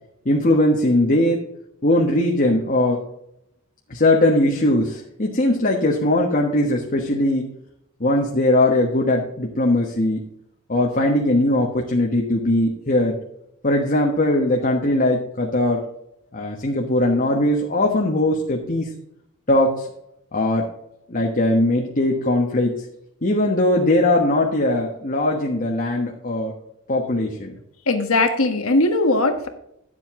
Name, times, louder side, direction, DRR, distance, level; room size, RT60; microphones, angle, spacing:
voice 1, 0.2-1.4 1.8-3.0 3.9-7.5 8.0-10.2 10.7-13.2 13.6-15.8 16.3-18.9 19.5-19.9 20.3-20.7 21.1-22.8 23.2-26.5 26.9-27.5, left 1 dB, 40° left, 0 dB, 1.3 m, -20 dB
voice 2, 27.9-29.5, left 2 dB, 65° left, 6 dB, 1.5 m, -19 dB
11.5 x 7.5 x 3.7 m, 0.78 s
head